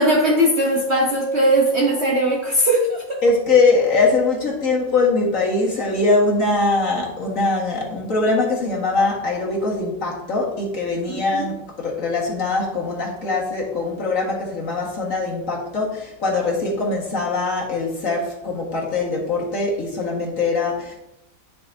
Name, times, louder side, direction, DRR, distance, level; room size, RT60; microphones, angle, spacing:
voice 1, 0.0-3.2 11.1-11.5, right 1 dB, 45° right, -1 dB, 1.0 m, -19 dB
voice 2, 3.2-20.9, left 3 dB, 45° left, -3 dB, 2.1 m, -22 dB
10.5 x 6.0 x 2.8 m, 0.84 s
omnidirectional pair, 2.0 m